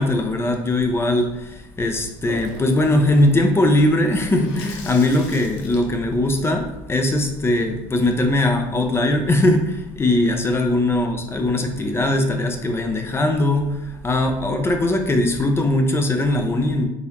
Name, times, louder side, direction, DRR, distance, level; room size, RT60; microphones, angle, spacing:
voice 1, 0.0-16.9, left 1 dB, 25° left, 4 dB, 0.6 m, -20 dB
Water tap faucet / Sink (filling or washing), 2.3-7.5, left 3 dB, 75° left, 0.7 m, -40 dB
3.8 x 2.6 x 3.0 m, 0.91 s
supercardioid pair, 80°, 10 cm